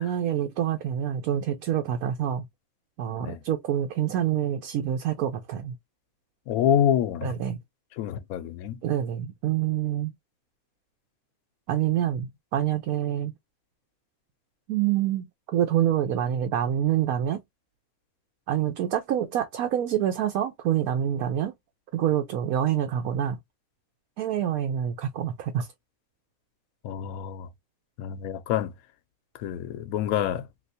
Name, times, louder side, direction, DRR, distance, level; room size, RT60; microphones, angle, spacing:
voice 1, 0.0-2.4 3.0-5.8 7.2-7.6 8.8-10.1 11.7-13.3 14.7-15.2 15.5-17.4 18.5-21.5 21.9-23.4 24.2-25.7, right 10 dB, 90° right, 1.1 m, -26 dB
voice 2, 6.5-7.3 8.0-8.8 26.8-27.5 28.0-28.7 29.4-30.5, left 10 dB, 85° left, 1.0 m, -27 dB
3.2 x 2.8 x 2.6 m
omnidirectional pair, 1.5 m